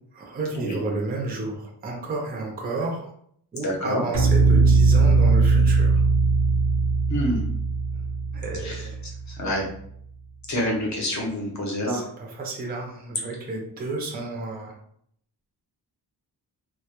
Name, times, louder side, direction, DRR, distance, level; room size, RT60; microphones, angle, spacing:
voice 1, 0.1-3.1 3.5-6.0 8.3-9.0 11.9-14.8, right 3 dB, 25° right, 0 dB, 0.4 m, -31 dB
voice 2, 3.6-4.0 7.1-7.4 8.6-8.9 9.3-9.7 10.5-12.1, equal, 45° left, -1 dB, 0.7 m, -27 dB
sound 1, 4.1-9.4, right 3 dB, 80° right, 0.6 m, -20 dB
2.1 x 2.0 x 2.8 m, 0.66 s
wide cardioid pair, 180°, 40 cm